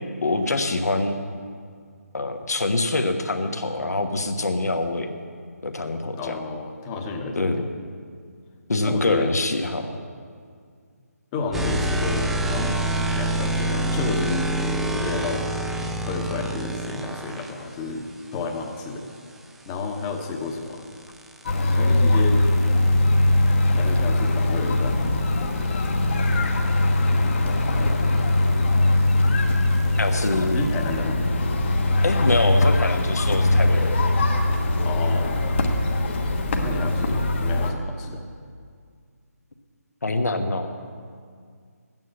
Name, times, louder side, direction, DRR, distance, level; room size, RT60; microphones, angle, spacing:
voice 1, 0.2-1.2 2.1-5.1 5.6-6.4 7.3-7.6 8.7-10.0 30.0-30.6 32.0-33.9 40.0-40.7, left 2 dB, 70° left, 5 dB, 1.4 m, -24 dB
voice 2, 6.0-7.5 8.9-9.3 11.3-12.8 13.1-14.5 14.9-15.4 16.1-19.0 19.6-20.8 21.6-22.5 23.7-25.0 30.4-31.2 34.8-35.5 36.6-38.2, left 4 dB, 20° left, 3 dB, 1.2 m, -31 dB
sound 1, 11.5-17.5 20.0-31.0, right 1 dB, ahead, 0.4 m, -30 dB
sound 2, 21.5-37.7, left 2 dB, 45° left, 1.3 m, -21 dB
13.0 x 9.4 x 7.8 m, 2.1 s
figure-of-eight pair, 155°, 9 cm